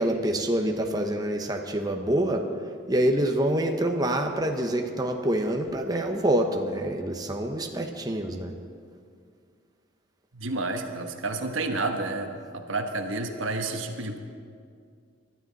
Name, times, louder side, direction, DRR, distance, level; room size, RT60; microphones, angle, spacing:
voice 1, 0.0-2.5 2.9-8.5, right 1 dB, 20° right, 3 dB, 0.9 m, -26 dB
voice 2, 10.3-14.2, right 2 dB, 85° right, 5 dB, 1.2 m, -30 dB
21.0 x 12.5 x 4.1 m, 2.2 s
head